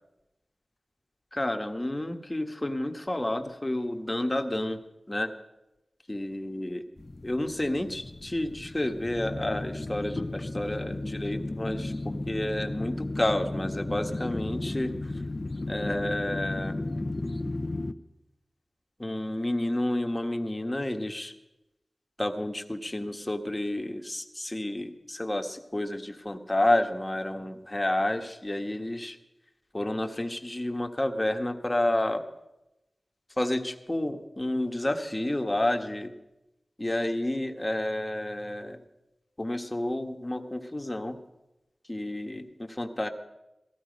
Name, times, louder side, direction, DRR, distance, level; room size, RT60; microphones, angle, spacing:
voice 1, 1.3-4.8 5.1-5.3 6.1-6.8 7.2-15.1 15.7-16.8 19.0-21.3 22.2-29.2 29.7-32.2 33.4-36.1 36.8-38.8 39.4-41.2 41.9-43.1, left 1 dB, 20° left, 5 dB, 1.4 m, -30 dB
sound 1, 7.0-17.9, left 2 dB, 35° left, 0.8 m, -34 dB
17.5 x 15.0 x 5.3 m, 0.94 s
wide cardioid pair, 65°, 0 cm